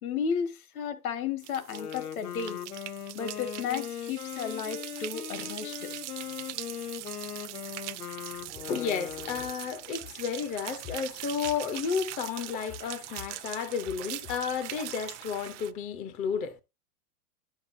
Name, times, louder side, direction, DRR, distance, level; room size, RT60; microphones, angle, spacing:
voice 1, 0.0-2.6 3.1-5.9, left 7 dB, 70° left, 1.7 m, -33 dB
sound 1, 1.4-15.7, right 17 dB, 50° right, 0.6 m, -42 dB
Wind instrument woodwind instrument, 1.6-9.6, left 10 dB, 85° left, 0.9 m, -39 dB
voice 2, 8.7-16.6, left 7 dB, 15° left, 0.5 m, -32 dB
10.0 x 7.2 x 2.6 m
hypercardioid pair, 125°, 45 cm